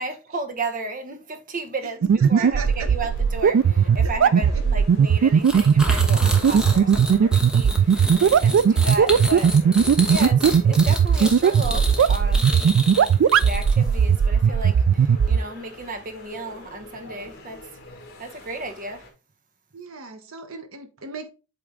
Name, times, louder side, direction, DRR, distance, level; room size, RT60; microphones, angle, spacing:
voice 1, 0.0-9.6 10.1-13.1 13.4-17.6 18.2-19.0, right 2 dB, 40° right, 1.0 m, -34 dB
voice 2, 1.8-2.9 4.0-4.7 19.7-21.3, right 5 dB, 90° right, 1.1 m, -37 dB
sound 1, 2.0-15.4, right 7 dB, 65° right, 0.3 m, -17 dB
sound 2, 2.5-19.1, left 1 dB, 50° left, 1.8 m, -44 dB
sound 3, 5.4-13.9, equal, 5° right, 1.1 m, -30 dB
7.9 x 3.4 x 3.7 m
head